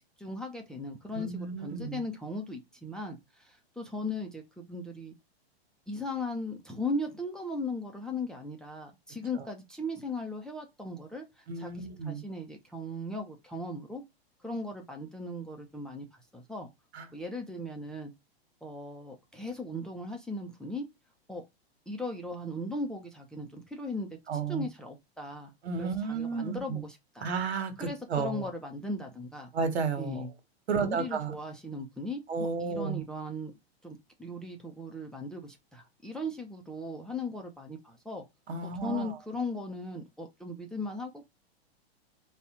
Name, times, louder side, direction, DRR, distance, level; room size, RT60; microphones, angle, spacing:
voice 1, 0.2-5.1 5.9-14.0 14.4-16.7 17.1-18.1 18.6-20.9 21.3-21.4 21.9-24.1 24.5-25.5 25.8-27.3 27.8-29.5 30.0-30.3 30.7-33.5 33.8-38.2 38.6-41.2, left 1 dB, ahead, 0.6 m, -38 dB
voice 2, 1.1-2.0 11.5-12.2 16.9-17.0 24.3-24.6 25.6-26.8 27.2-28.5 29.5-30.2 30.7-31.3 32.3-33.0 38.5-39.1, right 5 dB, 85° right, 1.5 m, -32 dB
4.1 x 2.4 x 4.2 m
hypercardioid pair, 130°, 31 cm